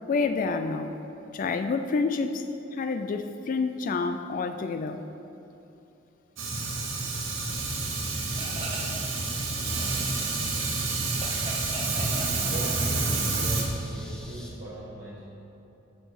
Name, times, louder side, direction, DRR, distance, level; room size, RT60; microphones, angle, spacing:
voice 1, 0.1-0.9 1.3-2.4 2.7-5.0, left 4 dB, 45° left, 8 dB, 0.3 m, -28 dB
Fire, 6.4-13.6, right 3 dB, 90° right, 1.2 m, -29 dB
sound 1, 7.1-14.5, equal, 5° left, 0.7 m, -43 dB
sound 2, 8.3-9.1 9.4-13.2, right 1 dB, 30° right, 1.0 m, -40 dB
voice 2, 12.5-15.2, right 1 dB, 50° right, -11 dB, 1.5 m, -41 dB
8.0 x 5.5 x 4.7 m, 2.9 s
head